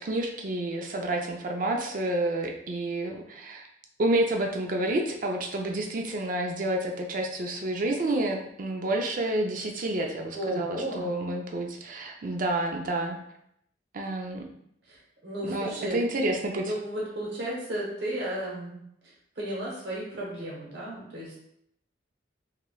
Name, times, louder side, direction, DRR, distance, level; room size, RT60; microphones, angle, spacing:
voice 1, 0.0-3.6 4.0-13.2 13.9-14.4 15.4-16.7, right 1 dB, 45° right, 2 dB, 0.4 m, -29 dB
voice 2, 10.3-11.1 14.9-16.0 16.5-18.8 19.4-21.4, right 1 dB, 65° right, -5 dB, 0.9 m, -34 dB
3.1 x 2.8 x 2.2 m, 0.73 s
head